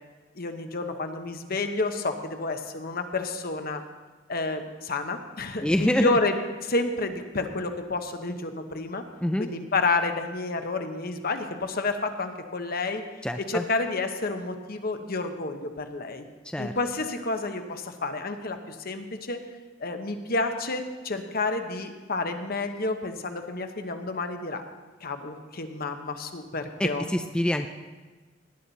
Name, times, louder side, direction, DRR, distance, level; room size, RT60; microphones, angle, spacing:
voice 1, 0.4-3.8 4.3-6.3 6.6-9.0 9.4-13.0 13.5-16.2 16.6-19.4 19.8-24.6 25.0-27.0, left 3 dB, 50° left, 6 dB, 1.1 m, -30 dB
voice 2, 5.6-6.1 9.2-9.5 13.2-13.6 16.5-16.7 26.8-27.7, left 1 dB, 5° left, 6 dB, 0.4 m, -25 dB
18.0 x 10.5 x 4.1 m, 1.3 s
head